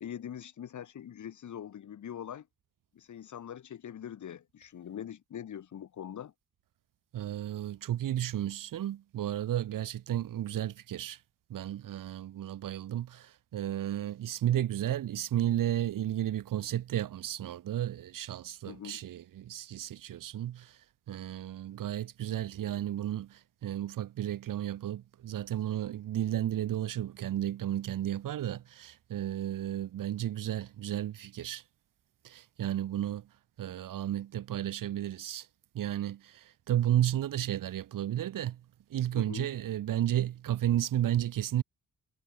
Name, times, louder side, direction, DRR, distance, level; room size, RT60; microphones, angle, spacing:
voice 1, 0.0-2.5 2.9-6.3 18.7-19.0 39.1-39.5, left 9 dB, 60° left, 1.8 m, -43 dB
voice 2, 7.1-11.2 11.5-20.8 21.1-31.6 32.2-33.3 33.6-35.5 35.7-38.6 38.9-41.6, right 12 dB, 75° right, 1.0 m, -33 dB
wide cardioid pair, 175°, 33 cm